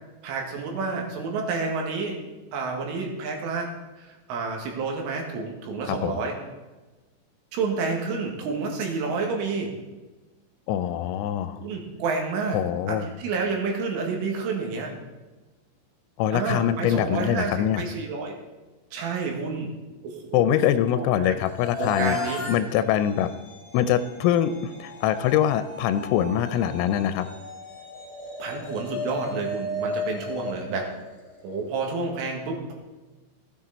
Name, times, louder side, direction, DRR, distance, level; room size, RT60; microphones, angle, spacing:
voice 1, 0.2-2.2 2.5-3.7 4.0-6.3 7.5-9.7 11.6-12.6 12.9-14.9 16.3-17.5 17.8-18.4 18.9-19.7 20.0-20.6 20.9-21.4 21.8-22.4 28.4-30.9 31.4-32.7, right 4 dB, 75° right, 1 dB, 4.2 m, -29 dB
voice 2, 10.7-11.6 12.5-13.1 16.2-17.8 20.3-22.2 22.5-23.3 23.7-27.3, left 10 dB, 85° left, 11 dB, 3.2 m, -23 dB
sound 1, 21.4-31.6, left 2 dB, 25° left, 2.2 m, -36 dB
16.0 x 9.4 x 4.1 m, 1.2 s
omnidirectional pair, 5.9 m